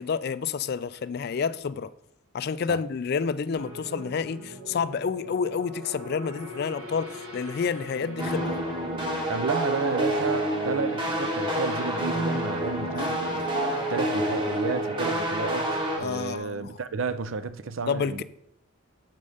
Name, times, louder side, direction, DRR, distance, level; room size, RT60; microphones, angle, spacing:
voice 1, 0.0-1.9 2.3-8.6 12.9-13.9 16.0-16.7 17.9-18.2, left 6 dB, 45° left, 0.3 m, -30 dB
sound 1, 3.5-16.4, right 1 dB, 85° right, 2.8 m, -40 dB
sound 2, 8.2-16.0, right 1 dB, 20° right, 1.0 m, -28 dB
voice 2, 9.3-13.2 13.9-18.2, right 5 dB, 60° right, 0.5 m, -32 dB
7.5 x 5.4 x 4.9 m
head